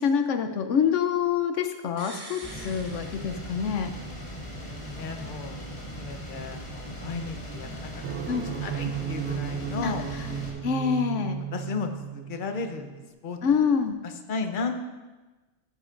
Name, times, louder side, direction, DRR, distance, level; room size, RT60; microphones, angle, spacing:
voice 1, 0.0-3.9 8.3-8.5 9.8-10.3 10.6-11.4 13.4-14.0, left 7 dB, 80° left, 7 dB, 1.0 m, -26 dB
sound 1, 2.0-3.9 4.2-4.3, right 1 dB, 20° right, 1.1 m, -45 dB
sound 2, 2.4-10.5, equal, 25° left, 2.3 m, -39 dB
voice 2, 4.5-5.6 6.0-7.9 8.6-10.0 11.5-11.9 12.3-12.9 13.2-13.4 14.3-14.7, left 4 dB, 45° left, 5 dB, 1.0 m, -34 dB
sound 3, 8.0-13.1, right 9 dB, 65° right, 1.0 m, -34 dB
14.5 x 9.9 x 2.5 m, 1.2 s
omnidirectional pair, 1.2 m